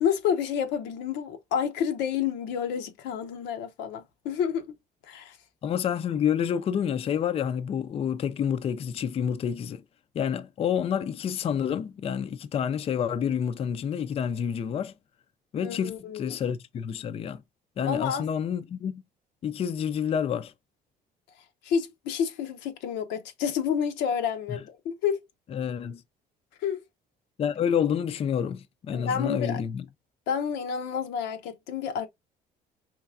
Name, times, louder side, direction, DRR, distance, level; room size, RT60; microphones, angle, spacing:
voice 1, 0.0-4.7 5.1-5.4 15.6-16.4 17.8-18.3 21.6-25.2 26.6-26.8 28.9-29.6 30.3-32.1, left 7 dB, 90° left, 0.8 m, -29 dB
voice 2, 5.6-9.8 10.1-14.9 15.5-17.4 17.8-19.0 19.4-20.5 24.5-24.6 25.5-26.0 27.4-29.8, left 8 dB, 35° left, 0.4 m, -28 dB
4.6 x 3.2 x 2.4 m
cardioid pair, 110°, 17 cm